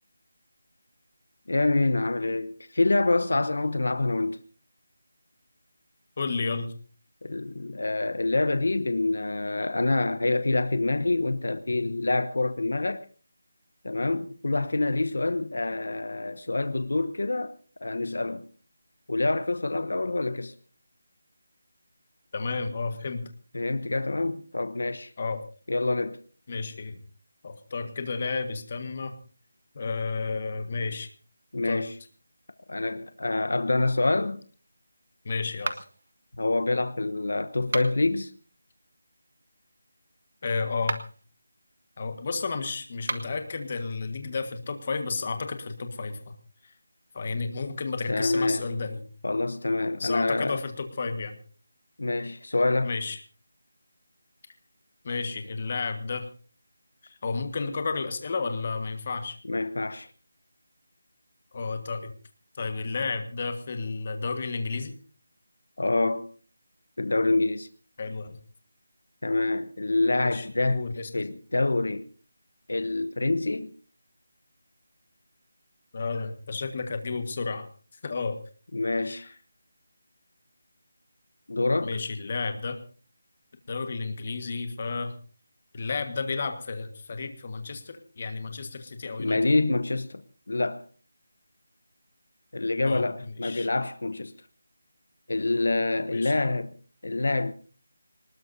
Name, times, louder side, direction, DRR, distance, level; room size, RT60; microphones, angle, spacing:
voice 1, 1.5-4.4 7.2-13.0 13.8-17.5 17.8-18.4 19.1-20.5 23.5-25.1 25.7-26.2 31.5-31.9 32.7-34.4 36.4-38.3 48.1-48.6 49.2-50.6 52.0-52.9 59.5-60.1 65.8-66.3 67.0-67.7 69.2-70.8 71.1-72.1 72.7-73.7 78.7-79.2 81.5-81.9 89.2-90.2 90.5-90.8 92.5-94.3 95.3-96.7 97.0-97.5, left 2 dB, 75° left, 1.0 m, -26 dB
voice 2, 6.2-6.7 22.3-23.3 25.2-25.4 26.5-27.0 27.4-29.2 29.7-31.1 31.6-31.8 35.2-35.8 40.4-41.0 42.0-46.3 46.6-46.7 47.1-49.0 50.0-51.4 52.8-53.2 55.0-56.3 57.0-59.4 61.5-62.1 62.6-64.9 68.0-68.4 70.2-71.1 75.9-77.7 78.0-78.4 79.0-79.3 81.8-82.8 83.7-85.1 85.7-89.4 92.8-93.7 96.1-96.3, left 4 dB, 30° left, 1.6 m, -32 dB
sound 1, 35.6-36.1 37.6-38.2 40.7-41.2 43.0-43.4, right 2 dB, 70° right, 1.7 m, -34 dB
24.5 x 19.5 x 2.7 m
figure-of-eight pair, 175°, 0 cm